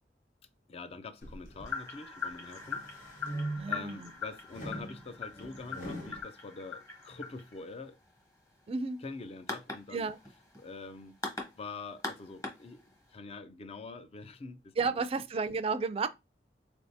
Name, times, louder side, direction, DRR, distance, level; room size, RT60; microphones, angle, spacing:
voice 1, 0.7-2.9 3.2-3.3 3.7-8.0 9.0-10.1 10.6-11.2 11.5-12.8 13.1-15.0, left 3 dB, 35° left, 0.4 m, -45 dB
sound 1, 1.2-1.8 2.3-3.9 4.5-6.2, right 1 dB, 50° left, 1.1 m, -41 dB
sound 2, 1.6-13.1, left 4 dB, 20° left, 1.0 m, -42 dB
voice 2, 3.6-4.1 8.7-9.0 9.9-10.2 14.8-16.1, right 4 dB, 35° right, 0.3 m, -32 dB
3.9 x 3.4 x 2.7 m
head